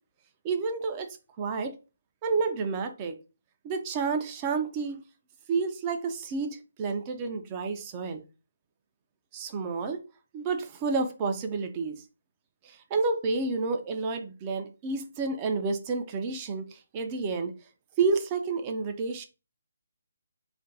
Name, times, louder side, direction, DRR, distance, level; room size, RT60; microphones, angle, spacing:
voice 1, 0.4-1.1 1.4-1.8 2.2-3.2 3.6-5.0 5.5-8.2 9.3-10.0 10.3-12.0 12.6-17.5 18.0-19.2, right 4 dB, 20° right, 0.4 m, -30 dB
2.5 x 2.2 x 3.9 m
hypercardioid pair, 165°, 0 cm